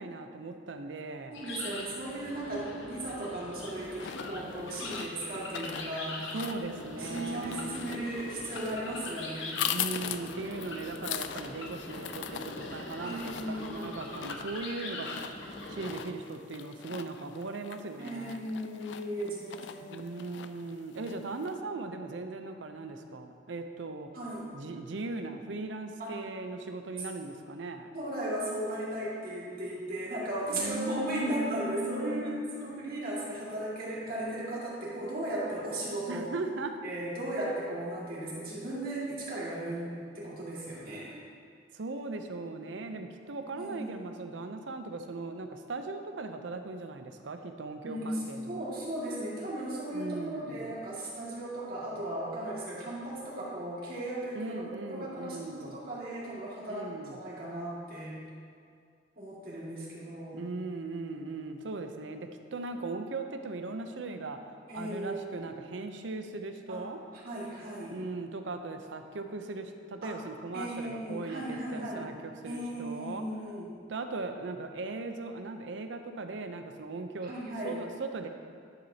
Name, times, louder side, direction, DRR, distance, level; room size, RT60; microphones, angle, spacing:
voice 1, 0.0-1.4 6.3-7.7 9.7-15.1 15.5-18.5 19.8-24.1 24.5-27.9 30.5-32.4 36.1-36.7 41.7-48.7 49.9-50.7 54.3-55.8 56.7-57.2 60.3-64.4 64.7-67.0 67.9-73.2 73.9-77.3 77.6-78.3, right 3 dB, 80° right, 7 dB, 0.6 m, -38 dB
sound 1, 1.3-16.0, left 2 dB, 80° left, 1.0 m, -42 dB
voice 2, 1.3-6.4 7.0-9.7 13.0-13.9 18.0-20.0 24.1-24.5 26.0-26.2 27.9-36.2 36.8-41.1 43.6-44.0 47.8-54.6 54.9-58.1 59.2-60.4 64.7-65.5 66.7-66.8 67.2-68.0 70.0-70.1 70.5-72.1 72.4-73.7 77.3-77.8, right 1 dB, 50° right, -7 dB, 2.1 m, -36 dB
sound 2, 3.6-21.5, left 9 dB, 65° left, 0.3 m, -41 dB
11.0 x 7.1 x 2.8 m, 2.2 s
head